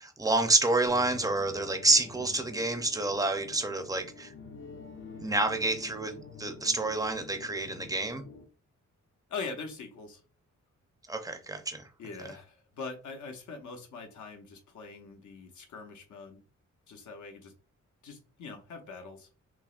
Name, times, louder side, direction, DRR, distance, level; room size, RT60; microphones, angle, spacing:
voice 1, 0.0-4.3 5.2-8.2 11.1-11.8, right 2 dB, 10° right, 0.5 m, -28 dB
sound 1, 0.9-8.4, left 4 dB, 40° left, 0.6 m, -47 dB
voice 2, 9.3-10.2 12.0-16.4 16.9-17.5 18.0-19.3, left 4 dB, 75° left, 0.8 m, -42 dB
5.9 x 2.1 x 2.4 m
wide cardioid pair, 115°, 30 cm